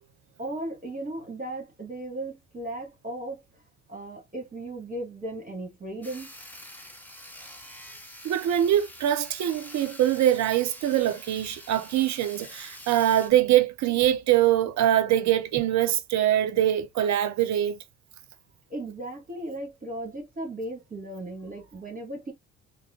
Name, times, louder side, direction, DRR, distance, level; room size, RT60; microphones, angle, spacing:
voice 1, 0.4-3.4 3.9-6.3 18.7-22.3, right 1 dB, 25° right, 1.5 m, -36 dB
Sawing, 6.0-13.3, left 1 dB, 5° left, 0.9 m, -46 dB
voice 2, 8.2-17.8, right 12 dB, 50° right, 0.7 m, -23 dB
3.5 x 2.0 x 2.9 m
hypercardioid pair, 55°, 36 cm